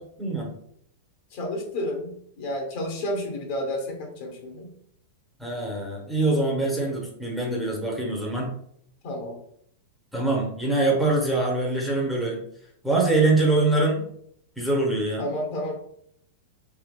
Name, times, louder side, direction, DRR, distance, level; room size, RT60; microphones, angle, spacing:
voice 1, 0.2-0.5 5.4-8.5 10.1-12.4 12.8-14.1 14.6-15.2, right 2 dB, ahead, -2 dB, 0.8 m, -24 dB
voice 2, 1.3-4.7 9.0-9.4 15.2-15.8, left 1 dB, 55° left, 2 dB, 0.9 m, -31 dB
3.3 x 2.8 x 2.2 m, 0.67 s
hypercardioid pair, 125°, 0 cm